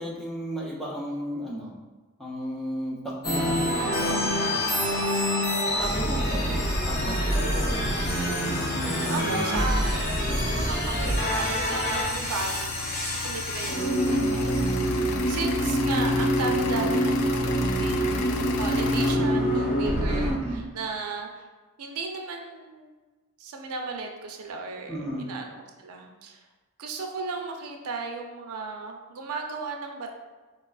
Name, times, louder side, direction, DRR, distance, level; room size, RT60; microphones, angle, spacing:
voice 1, 0.0-1.8 2.2-5.0 5.8-6.4 6.9-7.8 14.1-14.4 19.2-19.5 20.2-20.6 24.9-25.3, equal, ahead, -5 dB, 0.4 m, -34 dB
sound 1, 3.2-20.3, equal, 45° left, 0.6 m, -26 dB
voice 2, 6.1-6.8 9.1-20.3 20.7-21.5 21.8-23.0 23.4-25.0 25.3-25.4 25.8-26.4 26.8-30.1, right 4 dB, 80° right, 3 dB, 0.4 m, -35 dB
sound 2, 11.9-19.1, left 5 dB, 90° left, 0.3 m, -36 dB
4.0 x 2.3 x 2.3 m, 1.3 s
head